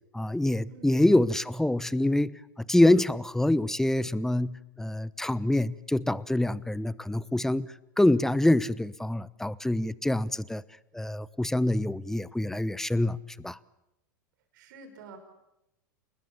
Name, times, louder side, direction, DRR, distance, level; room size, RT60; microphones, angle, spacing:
voice 1, 0.1-10.6 10.9-13.2 13.4-13.6, left 1 dB, 5° left, 19 dB, 0.9 m, -25 dB
voice 2, 14.5-15.2, right 4 dB, 65° right, 6 dB, 5.6 m, -48 dB
29.0 x 20.5 x 7.1 m, 0.88 s
hypercardioid pair, 95°, 11 cm